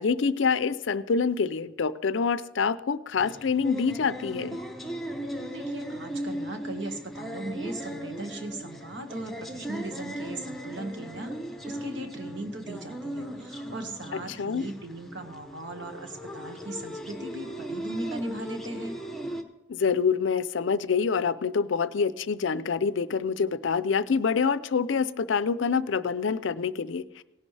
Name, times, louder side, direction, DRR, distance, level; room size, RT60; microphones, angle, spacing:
voice 1, 0.0-4.6 14.4-14.7 19.7-27.2, left 5 dB, 70° left, 16 dB, 0.5 m, -26 dB
sound 1, 3.2-19.4, equal, ahead, 0.9 m, -37 dB
voice 2, 5.4-11.4 11.6-19.0, right 2 dB, 60° right, 5 dB, 1.6 m, -38 dB
18.0 x 10.5 x 3.3 m, 0.99 s
head